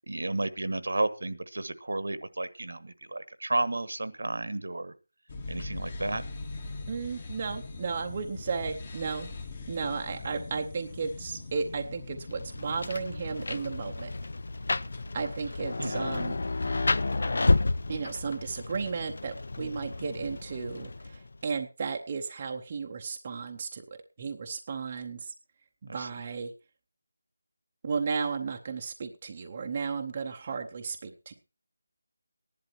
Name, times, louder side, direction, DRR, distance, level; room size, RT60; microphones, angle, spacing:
voice 1, 0.1-4.9 5.5-6.2 10.2-10.3 15.8-16.2 25.9-26.1, right 2 dB, 70° right, 13 dB, 1.3 m, -32 dB
sound 1, 5.3-18.2, left 3 dB, 20° left, 1.1 m, -42 dB
voice 2, 6.9-9.3 9.7-14.1 15.1-16.3 17.9-23.8 24.2-25.2 25.8-26.5 27.8-31.3, right 5 dB, 20° right, 4 dB, 0.8 m, -34 dB
Rain, 12.3-21.4, left 2 dB, 45° left, 0.6 m, -31 dB
15.5 x 11.0 x 4.4 m, 0.32 s
figure-of-eight pair, 180°, 0 cm